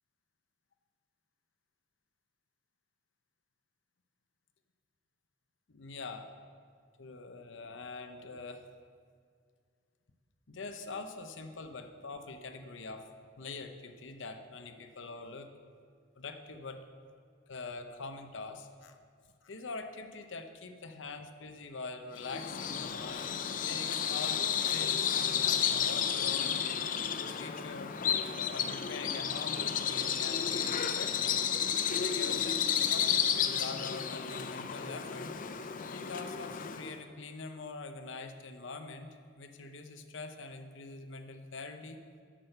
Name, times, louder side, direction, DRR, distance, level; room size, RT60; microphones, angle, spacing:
voice 1, 5.7-6.3 7.0-8.7 10.5-13.1 13.4-15.5 16.2-16.8 17.5-18.9 19.4-27.9 28.5-31.4 32.0-35.3 35.9-39.1 39.4-42.0, left 3 dB, 65° left, 6 dB, 0.8 m, -44 dB
Bird vocalization bird call bird song, 22.2-37.0, left 8 dB, 45° left, 0.5 m, -32 dB
10.0 x 6.3 x 6.6 m, 2.1 s
head